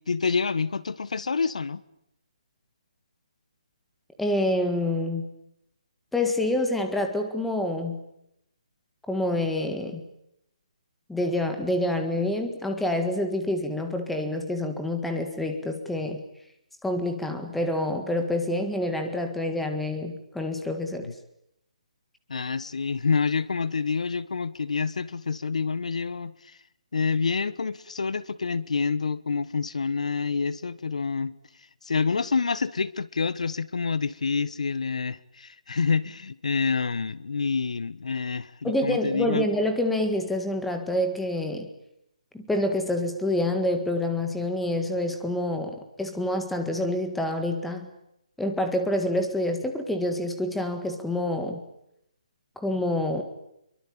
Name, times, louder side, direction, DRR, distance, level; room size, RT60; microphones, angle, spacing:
voice 1, 0.1-1.8 21.0-21.1 22.3-26.6 26.9-31.3 31.8-39.5, left 5 dB, 70° left, 19 dB, 1.4 m, -27 dB
voice 2, 4.2-5.2 6.1-8.0 9.1-10.0 11.1-16.2 16.8-21.1 38.6-41.7 42.3-47.9 48.4-51.6 52.6-53.2, left 1 dB, ahead, 6 dB, 1.8 m, -27 dB
26.5 x 23.5 x 8.8 m, 0.79 s
hypercardioid pair, 175°, 4 cm